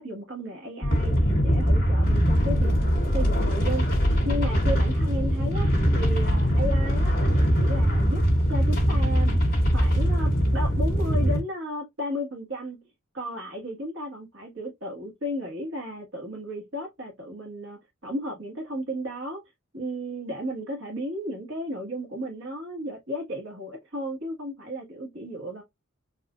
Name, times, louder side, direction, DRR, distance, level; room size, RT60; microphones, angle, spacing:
voice 1, 0.0-3.9 4.2-9.4 9.7-12.9 13.1-19.4 19.7-25.6, equal, 60° right, 1.5 m, -34 dB
sound 1, 0.8-11.4, equal, 40° left, 1.6 m, -22 dB
4.2 x 2.5 x 2.3 m
head